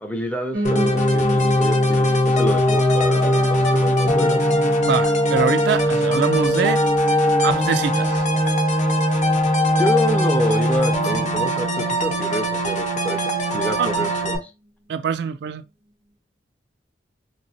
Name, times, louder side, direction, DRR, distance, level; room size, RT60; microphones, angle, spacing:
voice 1, 0.0-4.5 9.8-14.4, equal, 10° left, 0.5 m, -27 dB
Piano, 0.5-9.6 10.0-11.2 11.5-11.6 11.8-11.9 12.1-12.2 12.8-12.9, right 1 dB, 90° right, 0.9 m, -34 dB
sound 1, 0.6-14.4, equal, 45° left, 0.7 m, -20 dB
voice 2, 4.8-6.8 7.4-8.2 13.8-14.1 14.9-15.6, right 6 dB, 65° right, 0.3 m, -24 dB
3.0 x 2.9 x 2.7 m
head